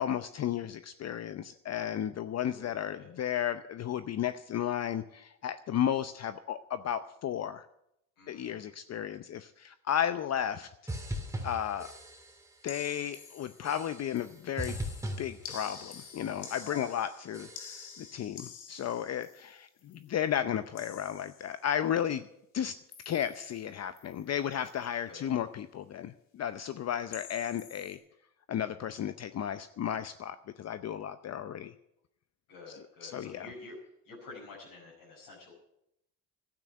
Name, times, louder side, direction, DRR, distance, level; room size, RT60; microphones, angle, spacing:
voice 1, 0.0-7.7 8.3-10.7 11.4-11.9 12.6-14.8 15.2-22.3 22.5-22.7 23.0-28.0 28.5-31.7 32.7-33.5, left 10 dB, 40° left, 12 dB, 0.7 m, -34 dB
voice 2, 2.5-3.1 8.2-8.8 16.7-16.9 25.1-25.2 32.5-33.8 34.0-35.5, left 3 dB, 60° left, -5 dB, 5.7 m, -48 dB
sound 1, 10.9-12.5 12.7-13.2 13.6-14.3 14.6-16.2 16.4-16.9 17.3-18.0, equal, 5° right, 2.7 m, -40 dB
sound 2, 12.7-13.8 14.2-20.1 20.8-21.7 22.9-23.6 24.0-24.3 24.5-24.8 27.1-28.0, left 7 dB, 85° left, 2.8 m, -49 dB
12.5 x 9.0 x 9.2 m, 0.81 s
supercardioid pair, 85°, 40 cm